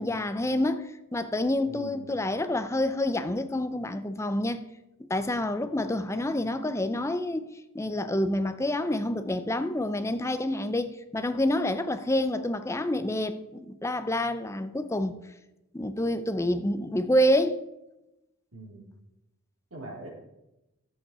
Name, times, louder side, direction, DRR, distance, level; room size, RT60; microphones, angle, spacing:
voice 1, 0.0-4.6 5.0-15.2 15.7-17.6, left 1 dB, 15° left, 0.5 m, -28 dB
voice 2, 1.7-2.1 18.5-18.9 19.7-20.1, right 2 dB, 80° right, 3.8 m, -43 dB
11.0 x 7.9 x 4.9 m
head